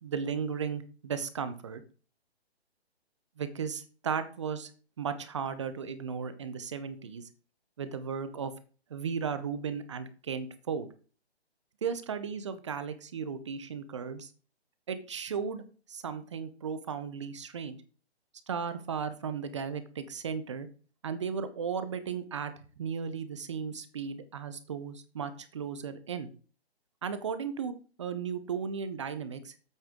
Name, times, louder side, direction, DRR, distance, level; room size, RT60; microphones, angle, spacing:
voice 1, 0.0-1.8 3.4-4.7 5.0-7.3 7.8-8.5 8.9-10.9 11.8-14.3 14.9-17.8 18.5-20.7 21.0-22.5 22.8-26.3 27.0-27.7 28.0-29.5, right 6 dB, 30° right, 12 dB, 0.6 m, -35 dB
8.5 x 8.2 x 3.6 m, 0.38 s
hypercardioid pair, 150°, 33 cm